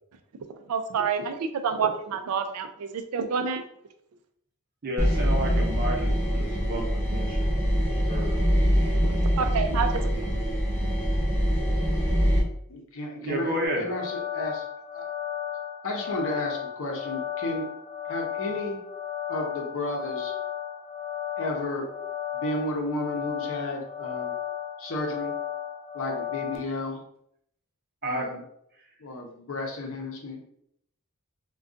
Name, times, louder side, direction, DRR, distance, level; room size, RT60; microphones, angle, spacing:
voice 1, 0.7-3.6 9.0-10.3, right 6 dB, 75° right, 7 dB, 0.4 m, -28 dB
voice 2, 4.8-7.6 7.9-8.3 8.8-8.9 13.2-13.9 28.0-28.3, equal, 45° right, -1 dB, 0.8 m, -31 dB
sound 1, 5.0-12.4, equal, 10° left, 0.7 m, -24 dB
voice 3, 12.7-14.6 14.9-15.0 15.8-17.7 18.1-18.8 19.3-20.3 21.4-21.8 22.3-24.3 24.8-25.3 25.9-27.0 28.0-28.4 29.0-30.5, left 1 dB, 60° left, 2 dB, 0.7 m, -33 dB
sound 2, 13.6-26.6, left 10 dB, 40° left, 1.0 m, -34 dB
2.4 x 2.3 x 3.7 m, 0.73 s
head